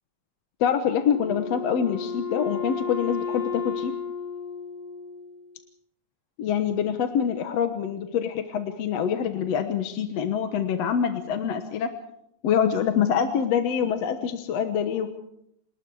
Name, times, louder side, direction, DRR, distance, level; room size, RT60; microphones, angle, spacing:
voice 1, 0.6-3.9 6.4-11.9 12.4-15.2, left 8 dB, 65° left, 7 dB, 2.2 m, -25 dB
Wind instrument woodwind instrument, 1.0-5.5, left 5 dB, 50° left, 7.6 m, -33 dB
28.5 x 19.5 x 4.8 m, 0.78 s
omnidirectional pair, 3.4 m